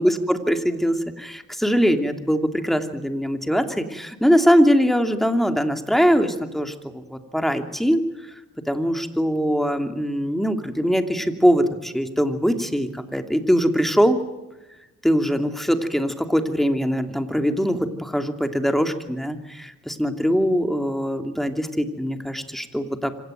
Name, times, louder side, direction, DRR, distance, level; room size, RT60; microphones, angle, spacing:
voice 1, 0.0-8.0 8.7-14.2 15.0-23.2, equal, ahead, 6 dB, 2.9 m, -22 dB
26.0 x 17.0 x 9.3 m, 1.0 s
cardioid pair, 90°, 30 cm